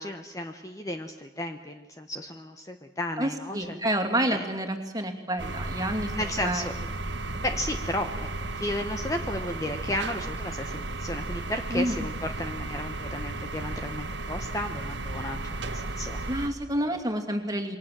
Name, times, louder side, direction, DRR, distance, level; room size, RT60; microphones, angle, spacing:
voice 1, 0.0-3.8 4.3-4.4 6.1-6.7 7.3-16.2, left 1 dB, 15° left, 5 dB, 1.1 m, -34 dB
voice 2, 3.2-6.7 11.7-12.1 16.3-17.8, right 1 dB, 20° right, 5 dB, 2.6 m, -29 dB
sound 1, 5.4-16.5, right 2 dB, 75° right, 1.4 m, -34 dB
28.0 x 23.5 x 7.5 m, 1.2 s
head